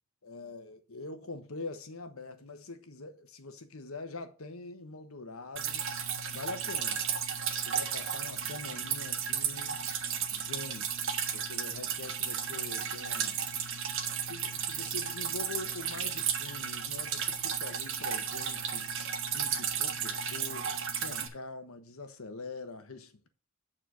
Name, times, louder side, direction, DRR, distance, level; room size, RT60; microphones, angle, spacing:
voice 1, 0.2-5.8 6.3-7.1 7.6-9.9 10.3-10.9 11.3-13.4 14.3-18.9 19.3-20.7 21.0-23.3, left 3 dB, 80° left, 1.2 m, -44 dB
Drip, 5.6-21.3, right 7 dB, 65° right, 1.4 m, -34 dB
8.6 x 4.4 x 6.2 m
head